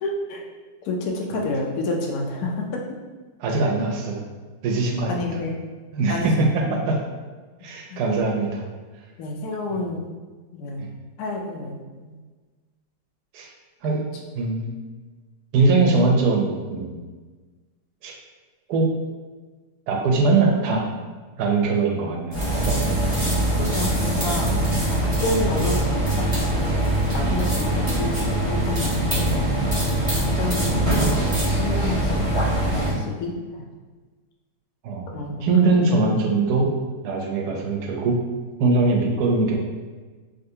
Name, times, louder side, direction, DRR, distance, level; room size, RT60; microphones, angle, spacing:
voice 1, 0.0-0.4 0.8-2.8 5.1-5.6 6.1-6.8 7.9-8.0 9.2-10.0 10.5-10.9 11.2-12.2 13.9-14.0 23.2-24.5 24.9-26.7 27.1-29.5 30.1-33.6 35.1-35.5 35.9-36.0, left 2 dB, 70° left, 0 dB, 1.0 m, -29 dB
voice 2, 3.4-4.3 4.6-5.4 5.9-7.0 7.6-8.7 9.7-9.8 10.8-10.9 13.3-13.5 13.8-14.0 14.3-14.7 15.5-17.0 18.0-18.2 18.7-18.9 19.9-20.9 21.4-22.9 24.5-24.6 27.3-27.4 34.8-36.7 37.0-38.3 38.6-39.6, right 3 dB, 70° right, 1 dB, 1.0 m, -22 dB
sound 1, 22.3-32.9, right 1 dB, 25° right, 0.6 m, -22 dB
3.6 x 2.5 x 2.7 m, 1.4 s
omnidirectional pair, 1.9 m